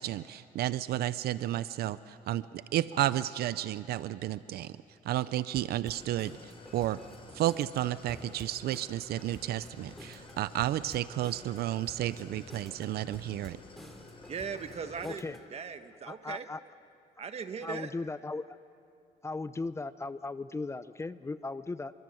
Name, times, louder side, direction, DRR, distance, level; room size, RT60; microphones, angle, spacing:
voice 1, 0.0-4.8 5.0-7.0 7.3-13.6, right 13 dB, 70° right, 15 dB, 0.6 m, -32 dB
sound 1, 5.5-15.5, equal, ahead, 2.8 m, -51 dB
Idling, 5.9-15.1, left 3 dB, 35° left, 4.3 m, -52 dB
voice 2, 14.3-16.5 17.2-17.9, right 6 dB, 40° right, 9 dB, 1.5 m, -39 dB
voice 3, 15.0-15.4 16.1-16.6 17.6-18.5 19.2-21.9, left 3 dB, 15° left, 14 dB, 0.6 m, -37 dB
29.0 x 23.5 x 7.8 m, 2.5 s
cardioid pair, 110°, 17 cm